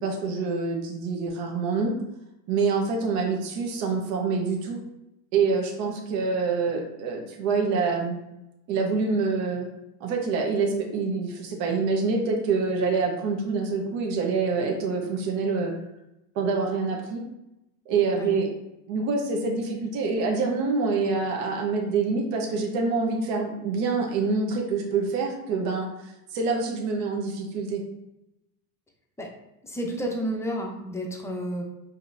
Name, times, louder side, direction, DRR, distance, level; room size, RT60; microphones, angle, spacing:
voice 1, 0.0-1.9 2.5-4.8 5.3-8.2 8.7-9.7 10.0-15.7 16.3-17.2 17.9-18.5 18.9-27.8, right 4 dB, 60° right, 1 dB, 1.0 m, -26 dB
voice 2, 29.6-31.6, equal, 5° left, 0 dB, 0.5 m, -31 dB
5.1 x 2.9 x 2.5 m, 0.89 s
supercardioid pair, 120°, 48 cm